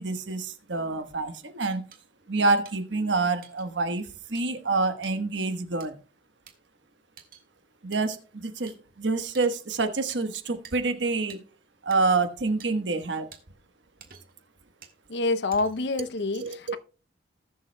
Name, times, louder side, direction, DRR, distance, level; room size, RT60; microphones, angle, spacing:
voice 1, 0.0-1.8 2.3-6.0 7.8-11.4 11.8-13.3 16.3-16.8, right 3 dB, 85° right, 1.2 m, -27 dB
sound 1, 1.9-2.0 2.6-2.8 3.4-3.7 4.3-4.4 5.0-5.1 5.8-5.9 6.5-6.6 7.2-7.4 7.9-8.0 8.7-8.8 9.3-9.6 10.1-10.2 10.6-10.8 11.3-11.4 11.9-12.0 12.6-12.7 13.3-13.4 14.0-14.4 14.8-15.0 15.5-15.9, right 7 dB, 50° right, 1.6 m, -49 dB
voice 2, 15.1-16.8, left 3 dB, 70° left, 0.6 m, -27 dB
19.5 x 6.7 x 2.2 m
head